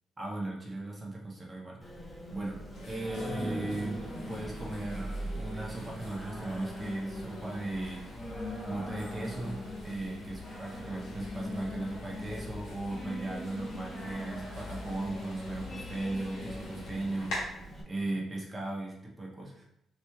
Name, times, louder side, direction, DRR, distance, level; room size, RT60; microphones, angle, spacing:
voice 1, 0.2-1.9 2.3-8.2 8.6-17.4 17.8-19.6, right 2 dB, 20° right, -2 dB, 0.9 m, -37 dB
Singing, 1.8-17.8, equal, 15° left, 0.9 m, -41 dB
sound 1, 2.7-17.4, left 2 dB, 90° left, 1.5 m, -47 dB
4.1 x 3.0 x 2.3 m, 0.76 s
cardioid pair, 90°, 0 cm